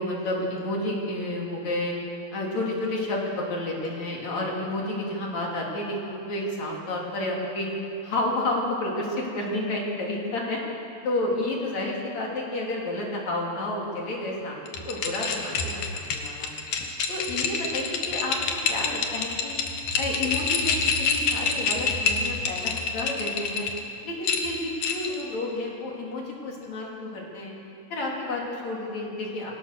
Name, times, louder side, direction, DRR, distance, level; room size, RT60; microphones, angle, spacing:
voice 1, 0.0-1.9 2.3-7.7 8.0-10.6 11.0-16.5 17.1-19.6 20.0-23.7 24.0-27.5 27.9-29.5, left 1 dB, 60° left, -2 dB, 4.4 m, -30 dB
sound 1, 14.7-23.8 24.2-25.2, left 5 dB, 85° left, 3.1 m, -27 dB
22.0 x 18.5 x 6.8 m, 2.7 s
omnidirectional pair, 3.6 m